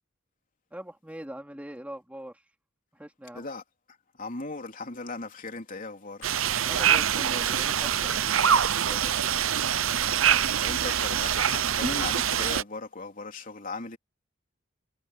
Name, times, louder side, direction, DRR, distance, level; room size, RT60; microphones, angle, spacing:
voice 1, 0.7-2.4 2.9-3.5 6.6-9.0, right 1 dB, 5° right, 2.6 m, -42 dB
voice 2, 4.2-6.3 10.6-14.0, left 3 dB, 45° left, 3.5 m, -37 dB
Liquid, 6.2-6.3 6.8-9.3 9.7-11.1 11.5-11.8, left 5 dB, 80° left, 3.3 m, -49 dB
sound 1, 6.2-12.6, right 9 dB, 85° right, 0.8 m, -25 dB
head